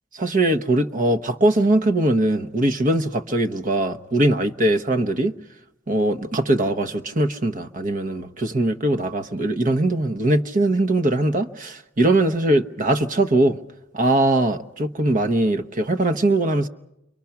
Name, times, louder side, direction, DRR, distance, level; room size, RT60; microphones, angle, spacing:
voice 1, 0.2-5.3 5.9-13.6 13.9-16.7, right 1 dB, 45° right, 1.0 m, -21 dB
29.5 x 23.0 x 5.9 m
head